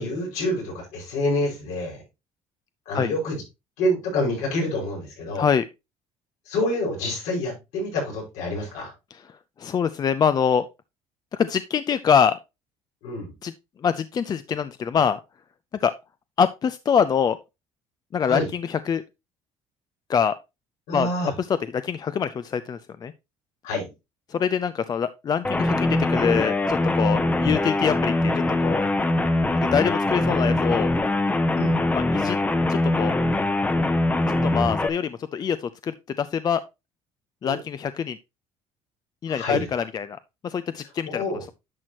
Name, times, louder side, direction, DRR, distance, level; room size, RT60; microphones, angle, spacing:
voice 1, 0.0-2.0 2.9-3.4 3.8-5.5 6.5-8.9 13.0-13.3 18.2-18.5 20.9-21.3 23.6-23.9 31.5-31.8 37.4-37.6 39.3-39.8 41.1-41.4, left 1 dB, 85° left, 5.2 m, -27 dB
voice 2, 5.3-5.7 9.1-9.2 9.6-10.7 11.3-12.4 13.4-13.5 13.8-15.2 15.8-15.9 16.4-17.4 18.1-19.0 20.1-20.3 20.9-21.1 21.8-23.1 24.3-28.3 28.6-28.9 29.6-30.9 31.9-32.4 32.7-33.1 34.4-36.6 37.4-38.2 39.2-41.5, left 7 dB, 35° left, 0.4 m, -24 dB
sound 1, 25.4-34.9, left 2 dB, 15° left, 0.8 m, -22 dB
10.5 x 6.1 x 2.9 m
cardioid pair, 115°, 12 cm